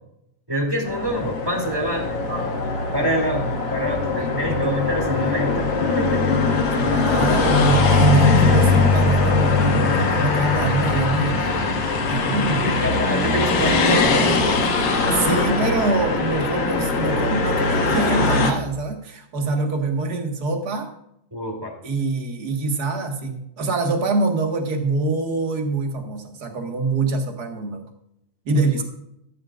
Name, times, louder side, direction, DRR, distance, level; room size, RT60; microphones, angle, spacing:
voice 1, 0.5-2.5 2.9-6.7 12.6-14.3 21.3-21.8 28.7-28.8, equal, 10° right, 1 dB, 2.4 m, -26 dB
sound 1, 0.8-18.5, left 4 dB, 85° left, 3.6 m, -20 dB
voice 2, 4.2-4.7 6.7-11.7 12.1-12.8 15.1-20.9 21.8-27.8 28.4-28.8, right 3 dB, 40° right, 3 dB, 1.6 m, -24 dB
15.5 x 14.0 x 2.5 m, 0.77 s
omnidirectional pair, 3.9 m